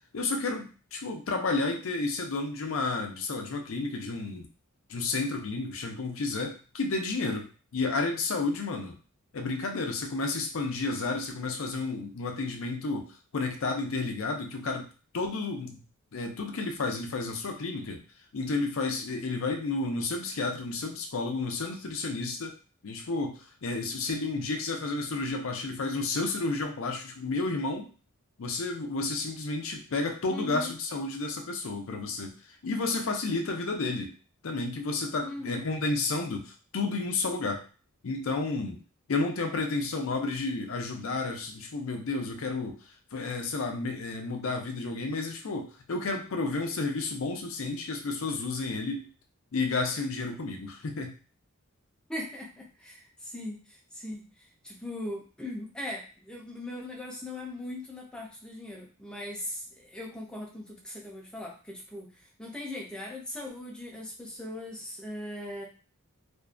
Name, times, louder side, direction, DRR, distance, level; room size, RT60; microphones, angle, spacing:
voice 1, 0.1-4.5 4.9-7.5 7.7-9.0 9.3-14.9 15.1-15.8 16.1-18.0 18.3-22.5 22.8-27.9 28.4-32.3 32.6-34.1 34.4-37.6 38.0-38.8 39.1-42.8 43.1-49.1 49.5-51.1, left 3 dB, 65° left, 4 dB, 0.5 m, -31 dB
voice 2, 30.3-30.7 35.2-35.7 52.1-65.7, left 1 dB, 5° left, -2 dB, 0.5 m, -39 dB
2.5 x 2.3 x 2.4 m, 0.37 s
head